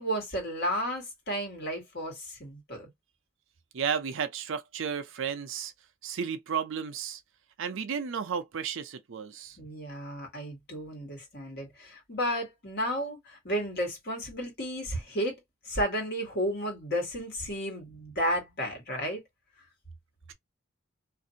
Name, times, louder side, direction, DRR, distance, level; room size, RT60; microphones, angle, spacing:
voice 1, 0.0-2.9 9.6-15.3 15.6-19.2, equal, 50° left, 1.5 m, -33 dB
voice 2, 3.7-5.7 6.0-7.2 7.6-9.6, right 7 dB, 65° right, 0.5 m, -33 dB
2.6 x 2.5 x 2.7 m
head